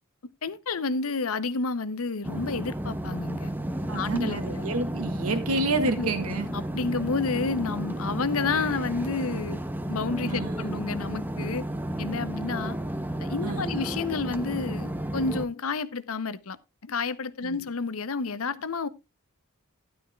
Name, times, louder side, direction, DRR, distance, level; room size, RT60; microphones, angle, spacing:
voice 1, 0.4-3.5 3.9-4.5 6.0-6.1 6.5-9.6 9.9-11.7 12.0-12.8 13.2-16.6 16.8-18.9, left 4 dB, 70° left, 0.8 m, -30 dB
sound 1, 2.2-15.5, right 1 dB, 10° right, 0.8 m, -32 dB
voice 2, 3.9-6.5 10.3-10.7 13.4-13.9 17.4-17.6, right 2 dB, 85° right, 2.0 m, -29 dB
12.5 x 11.5 x 2.3 m
head